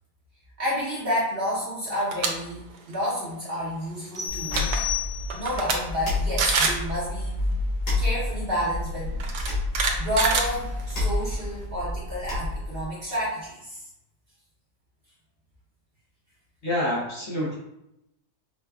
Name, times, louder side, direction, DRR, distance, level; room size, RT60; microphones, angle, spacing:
voice 1, 0.6-4.8 5.3-7.4 8.0-9.1 10.0-13.8, equal, 45° right, -7 dB, 0.9 m, -30 dB
sound 1, 2.0-2.3 2.7-2.9 4.1-4.2 4.4-4.8 5.3-5.8 6.1-6.2 6.4-6.8 8.0-8.1 9.2-11.1, right 4 dB, 85° right, 1.1 m, -25 dB
sound 2, 4.2-5.7, left 11 dB, 10° right, 0.8 m, -32 dB
sound 3, 4.3-12.9, left 2 dB, 90° left, 1.9 m, -29 dB
voice 2, 16.6-17.6, left 1 dB, 55° left, -5 dB, 0.9 m, -27 dB
4.7 x 2.2 x 2.3 m, 0.85 s
omnidirectional pair, 1.6 m